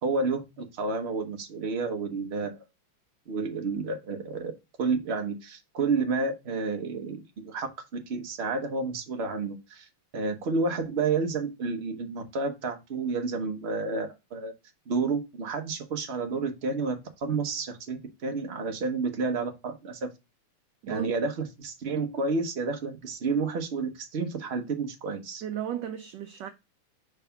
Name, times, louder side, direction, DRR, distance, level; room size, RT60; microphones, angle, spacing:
voice 1, 0.0-2.6 3.3-4.5 4.8-7.7 8.1-9.9 10.1-14.5 14.9-20.1 20.9-25.4, right 4 dB, 45° right, 0.8 m, -30 dB
voice 2, 20.8-21.1 25.4-26.5, right 10 dB, 75° right, 1.0 m, -34 dB
4.9 x 3.6 x 5.6 m
omnidirectional pair, 2.4 m